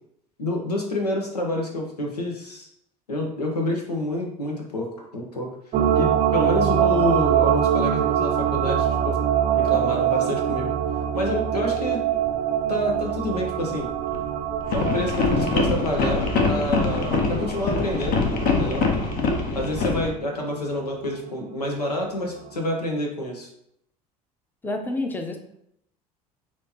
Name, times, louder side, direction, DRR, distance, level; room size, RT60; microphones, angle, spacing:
voice 1, 0.4-2.7 3.1-4.9 5.1-5.5 5.9-9.2 9.5-10.7 11.1-12.0 12.7-13.9 14.7-18.8 19.5-23.5, left 1 dB, 80° left, 1 dB, 0.9 m, -28 dB
sound 1, 5.7-21.4 21.8-21.9, right 9 dB, 40° right, 0.5 m, -25 dB
sound 2, 10.3-10.4 12.1-12.3 12.7-13.2 13.6-20.1, left 4 dB, 45° left, 0.9 m, -24 dB
voice 2, 24.6-25.4, left 2 dB, 10° left, 4 dB, 0.7 m, -28 dB
6.3 x 2.9 x 2.8 m, 0.74 s
figure-of-eight pair, 65°, 20 cm